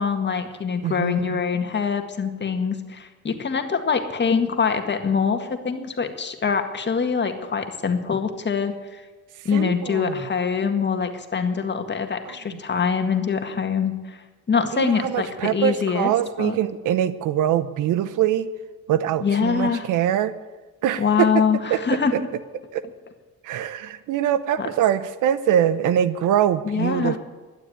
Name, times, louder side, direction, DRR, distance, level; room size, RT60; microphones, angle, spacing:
voice 1, 0.0-9.0 9.5-14.2 14.5-16.1 16.4-16.6 19.2-19.9 21.0-22.1 24.6-24.7 26.7-27.2, left 6 dB, 35° left, 6 dB, 1.9 m, -24 dB
voice 2, 0.8-1.4 9.5-10.2 12.3-12.6 14.7-18.5 18.9-20.3 20.8-21.4 21.7-21.8 22.1-22.2 22.7-22.8 23.4-27.2, right 10 dB, 85° right, 15 dB, 0.9 m, -23 dB
12.0 x 9.9 x 9.6 m, 1.3 s
cardioid pair, 90°, 30 cm